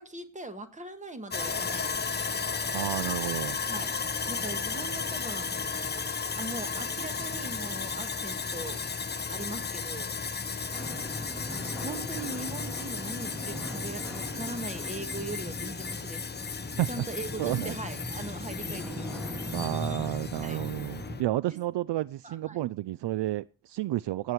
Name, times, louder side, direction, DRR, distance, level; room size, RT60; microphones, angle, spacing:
voice 1, 0.0-2.0 3.7-3.9 4.3-5.5 6.4-8.8 9.3-10.1 11.5-16.3 16.9-19.2 20.4-20.6 21.5-21.6 22.2-22.6, right 2 dB, 15° right, 8 dB, 1.6 m, -40 dB
Sawing, 1.3-21.2, left 5 dB, 25° left, 0.7 m, -34 dB
voice 2, 2.7-3.6 16.8-17.0 17.4-17.7 19.5-24.3, right 14 dB, 65° right, 19 dB, 0.5 m, -31 dB
sound 1, 10.7-21.2, equal, ahead, 3.1 m, -40 dB
16.0 x 9.3 x 4.6 m, 0.36 s
wide cardioid pair, 150°, 45 cm